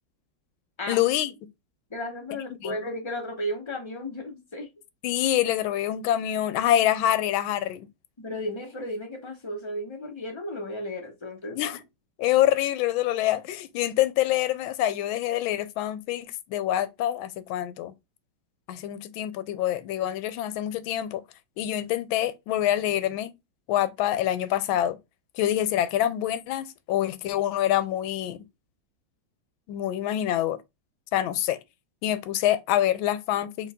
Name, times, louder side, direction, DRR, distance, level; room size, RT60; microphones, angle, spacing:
voice 1, 0.9-1.3 2.6-2.8 5.0-7.9 11.5-11.8 12.2-17.9 18.7-21.2 21.6-23.3 23.7-25.0 25.4-28.4 29.7-30.6 31.1-31.6 32.0-33.7, left 12 dB, 85° left, 1.4 m, -26 dB
voice 2, 1.9-4.7 8.2-11.6, left 1 dB, 25° left, 0.6 m, -34 dB
4.5 x 3.2 x 3.5 m
omnidirectional pair, 2.2 m